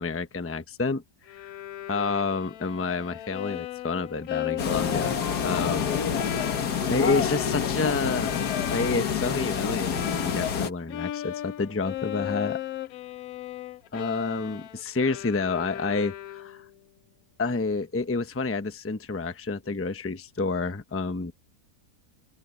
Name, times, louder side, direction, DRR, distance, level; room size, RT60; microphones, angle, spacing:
voice 1, 0.0-1.5 1.9-5.2 5.4-5.9 6.9-12.6 13.9-16.6 17.4-21.3, left 4 dB, 10° left, 0.7 m, -29 dB
Bowed string instrument, 1.3-10.6 10.9-16.7, left 13 dB, 70° left, 1.0 m, -37 dB
sound 1, 4.6-10.7, left 7 dB, 90° left, 2.0 m, -27 dB
open air
omnidirectional pair, 1.7 m